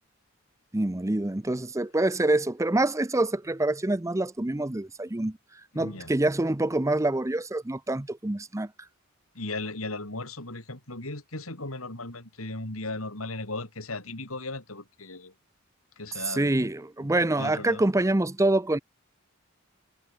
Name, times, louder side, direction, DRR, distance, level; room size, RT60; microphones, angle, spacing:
voice 1, 0.7-5.4 5.7-8.7 16.2-18.8, right 2 dB, 15° right, 0.6 m, -26 dB
voice 2, 5.7-6.1 9.4-15.3 16.0-16.7 17.0-17.8, left 2 dB, 80° left, 5.3 m, -37 dB
head